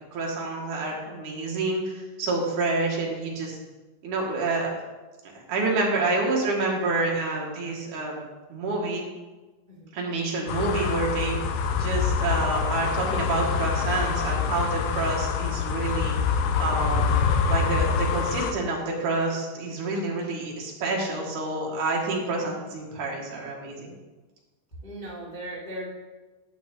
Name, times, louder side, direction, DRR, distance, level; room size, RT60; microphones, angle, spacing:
voice 1, 0.1-3.6 4.0-4.7 5.3-8.2 8.5-9.0 9.9-17.1 17.5-23.9, right 3 dB, 55° right, -2 dB, 2.7 m, -28 dB
sound 1, 10.5-18.5, left 6 dB, 80° left, 2.8 m, -25 dB
voice 2, 24.8-25.9, right 1 dB, 15° left, -8 dB, 1.4 m, -37 dB
12.0 x 8.5 x 3.8 m, 1.2 s
omnidirectional pair, 5.2 m